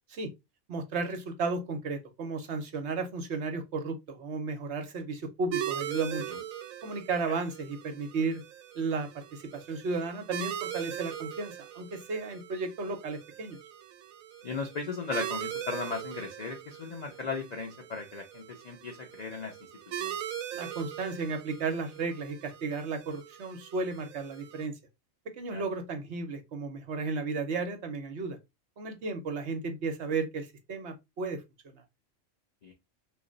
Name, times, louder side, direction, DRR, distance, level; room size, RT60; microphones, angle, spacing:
voice 1, 0.7-6.2 6.8-8.4 8.7-13.6 20.5-24.8 25.4-28.4 28.8-31.8, right 4 dB, 60° right, 0.9 m, -34 dB
sound 1, 5.5-24.7, right 10 dB, 80° right, 1.0 m, -40 dB
voice 2, 14.4-19.6 19.9-20.2 25.5-25.6 32.6-32.7, left 4 dB, 60° left, 0.4 m, -37 dB
3.1 x 2.5 x 3.7 m
omnidirectional pair, 1.4 m